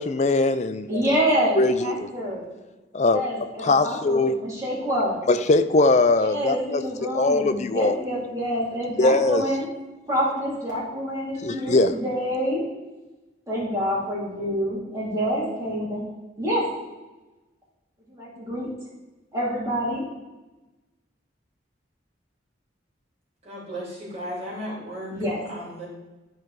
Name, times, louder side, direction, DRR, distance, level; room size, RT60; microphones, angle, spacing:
voice 1, 0.0-1.0 1.6-2.1 2.9-3.2 3.6-4.3 5.3-6.8 7.1-7.9 9.0-9.4 11.4-11.9, left 2 dB, 35° left, 10 dB, 0.4 m, -21 dB
voice 2, 0.9-2.4 3.0-5.2 6.2-9.7 10.1-12.6 13.5-16.1 16.4-16.6 18.1-18.7 19.3-20.1 25.1-25.4, equal, 15° right, -6 dB, 2.6 m, -27 dB
voice 3, 23.4-25.1 25.5-25.9, equal, 35° right, -5 dB, 3.0 m, -35 dB
12.0 x 4.5 x 4.7 m, 1.1 s
head